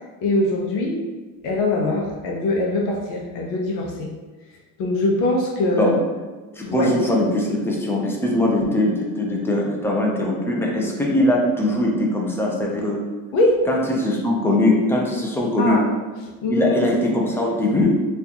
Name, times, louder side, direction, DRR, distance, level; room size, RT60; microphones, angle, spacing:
voice 1, 0.2-1.0 1.4-4.1 4.8-5.9 6.6-6.9 13.3-13.6 15.6-15.8 16.4-16.7, left 2 dB, 70° left, -1 dB, 0.7 m, -22 dB
voice 2, 6.5-13.0 13.7-15.8 16.5-18.1, left 1 dB, 5° left, -2 dB, 0.5 m, -21 dB
4.2 x 2.4 x 2.8 m, 1.3 s
cardioid pair, 150°, 33 cm